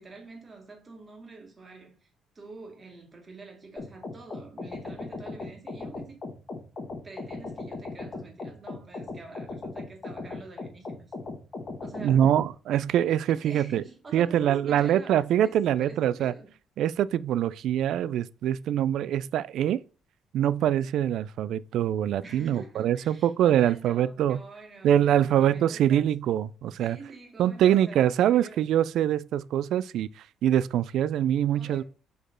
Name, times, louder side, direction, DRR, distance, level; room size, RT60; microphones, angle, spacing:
voice 1, 0.0-2.1 2.3-6.2 7.0-11.1 11.8-12.3 13.3-16.5 22.2-26.1 26.8-28.6 31.5-31.8, right 3 dB, 20° right, 1.6 m, -46 dB
sound 1, 3.8-12.5, left 3 dB, 25° left, 1.5 m, -38 dB
voice 2, 12.0-13.8 14.1-16.3 16.8-19.8 20.3-24.4 24.8-27.0 27.4-30.1 30.4-31.8, right 10 dB, 60° right, 0.3 m, -24 dB
5.1 x 4.3 x 5.7 m
cardioid pair, 175°, 0 cm